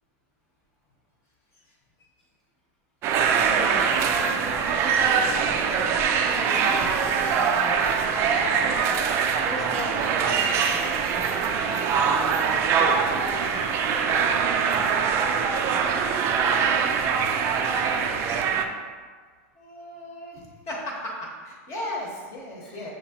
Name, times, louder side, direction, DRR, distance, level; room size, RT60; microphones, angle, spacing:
sound 1, 3.0-18.7, right 6 dB, 30° right, 0.3 m, -23 dB
voice 1, 3.4-8.7 9.4-10.6 11.0-14.3 14.7-14.9 22.6-22.8, equal, ahead, -7 dB, 0.9 m, -39 dB
voice 2, 19.6-21.1 21.4-22.9, left 1 dB, 35° left, -2 dB, 1.0 m, -35 dB
6.1 x 2.9 x 2.8 m, 1.5 s
supercardioid pair, 150°, 8 cm